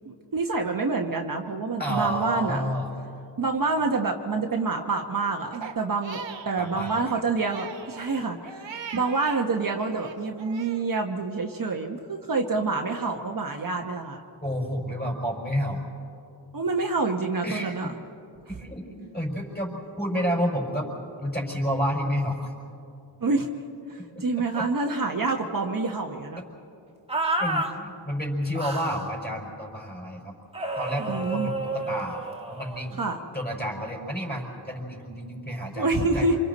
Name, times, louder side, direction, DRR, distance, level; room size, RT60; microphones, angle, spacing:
voice 1, 0.0-2.7 3.4-6.2 6.4-8.7 8.9-14.2 16.5-17.9 23.2-23.5 23.9-26.4 31.0-31.5 33.0-33.2 35.7-36.4, right 3 dB, 45° right, 2 dB, 1.2 m, -27 dB
voice 2, 1.8-2.9 6.6-7.0 8.9-9.0 14.4-15.8 17.4-17.7 18.5-19.7 20.0-20.9 21.2-22.5 24.5-24.6 27.4-30.3 30.8-32.2 32.5-33.0 33.3-35.9 36.1-36.3, equal, 20° left, -2 dB, 5.2 m, -30 dB
Crying sobbing, 5.5-9.4 9.8-10.8, right 6 dB, 70° right, 1.2 m, -41 dB
sound 1, 27.1-27.7 28.5-29.0 30.5-32.9, right 2 dB, 10° right, 1.5 m, -30 dB
28.0 x 26.5 x 4.2 m, 2.7 s
wide cardioid pair, 120°, 47 cm